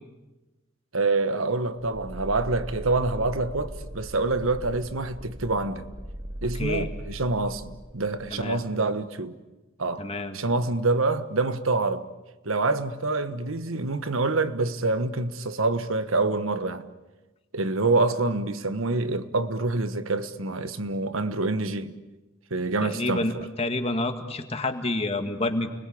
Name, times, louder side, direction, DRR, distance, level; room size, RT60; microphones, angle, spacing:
voice 1, 0.9-5.8 6.4-9.4 9.8-10.0 10.3-12.1 12.4-16.9 17.5-22.0 22.5-23.4, right 3 dB, 90° right, 1.4 m, -26 dB
sound 1, 1.8-8.4, right 1 dB, 20° right, 2.1 m, -39 dB
voice 2, 8.3-8.6 10.0-10.4 22.8-23.3 23.6-25.7, left 2 dB, 30° left, 2.0 m, -28 dB
30.0 x 21.0 x 8.7 m
head